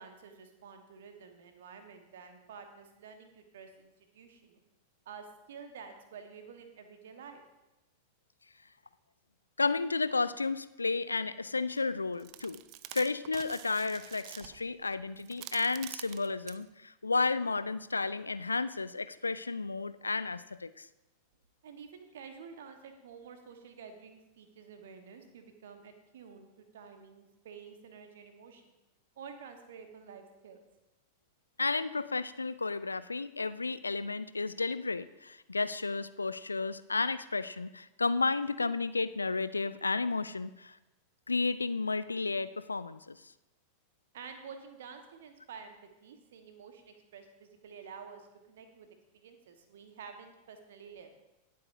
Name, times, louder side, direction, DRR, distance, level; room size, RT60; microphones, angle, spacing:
voice 1, 0.0-4.6 5.0-7.4 21.6-28.7 29.2-30.6 44.1-48.9 49.1-51.1, right 6 dB, 60° right, 6 dB, 1.3 m, -50 dB
voice 2, 9.6-12.6 12.9-20.8 31.6-40.8 41.3-43.2, left 3 dB, 80° left, 14 dB, 0.4 m, -32 dB
sound 1, 11.7-11.8 12.2-16.6, right 15 dB, 45° right, 0.4 m, -47 dB
19.0 x 7.7 x 2.7 m, 0.96 s
figure-of-eight pair, 90°, 0 cm